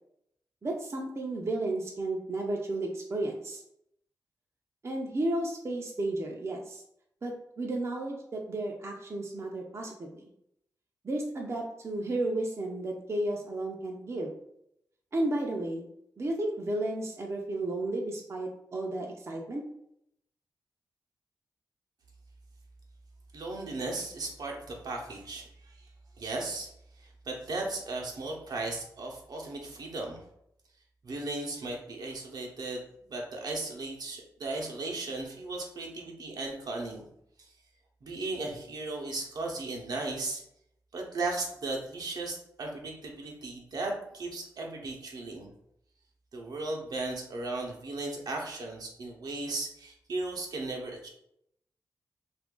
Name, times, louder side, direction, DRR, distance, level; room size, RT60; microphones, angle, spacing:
voice 1, 0.6-3.6 4.8-6.8 7.2-10.2 11.0-14.3 15.1-15.8 16.2-19.6, right 2 dB, 40° right, 0 dB, 0.6 m, -33 dB
voice 2, 23.3-25.8 26.2-26.7 27.0-30.2 31.0-37.1 37.4-37.5 38.0-40.4 40.9-45.5 46.3-51.1, right 2 dB, 70° right, 0 dB, 0.8 m, -36 dB
2.7 x 2.5 x 3.7 m, 0.75 s
cardioid pair, 60°, 7 cm